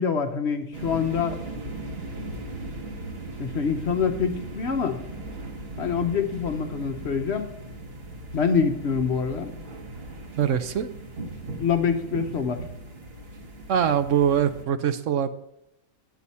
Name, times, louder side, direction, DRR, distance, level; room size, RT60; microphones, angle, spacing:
voice 1, 0.0-1.4 3.4-5.0 5.8-7.5 8.3-9.5 11.6-12.6, left 6 dB, 55° left, 6 dB, 0.9 m, -25 dB
sound 1, 0.7-14.6, right 2 dB, 45° right, 1.3 m, -38 dB
voice 2, 10.4-10.9 13.7-15.3, right 8 dB, 70° right, 10 dB, 0.9 m, -23 dB
9.7 x 8.3 x 4.2 m, 0.79 s
omnidirectional pair, 1.5 m